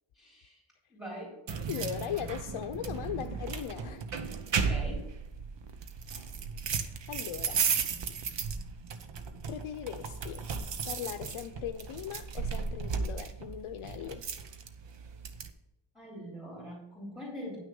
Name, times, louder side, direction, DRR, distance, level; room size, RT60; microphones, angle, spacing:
voice 1, 0.2-0.6 0.9-1.4 4.6-5.1 15.9-17.6, equal, 5° right, -4 dB, 3.6 m, -43 dB
sound 1, 1.5-15.5, right 5 dB, 60° right, 1.0 m, -35 dB
voice 2, 1.7-4.1 7.1-7.7 9.5-10.5 10.8-14.3, left 10 dB, 85° left, 5 dB, 0.7 m, -39 dB
10.5 x 6.4 x 5.4 m, 0.93 s
wide cardioid pair, 150°, 49 cm